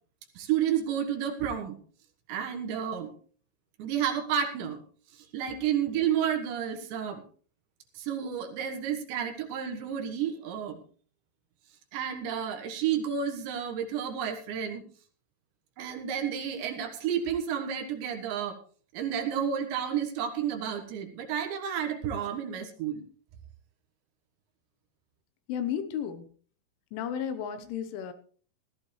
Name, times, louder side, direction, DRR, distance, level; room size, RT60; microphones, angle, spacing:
voice 1, 0.4-1.8 2.3-3.1 3.8-4.8 5.1-7.2 8.0-10.8 11.9-14.8 15.8-18.6 18.9-23.0, right 8 dB, 70° right, 4 dB, 3.4 m, -31 dB
voice 2, 25.5-26.3 26.9-28.1, left 8 dB, 75° left, 10 dB, 3.4 m, -33 dB
17.0 x 14.5 x 3.2 m, 0.43 s
omnidirectional pair, 5.8 m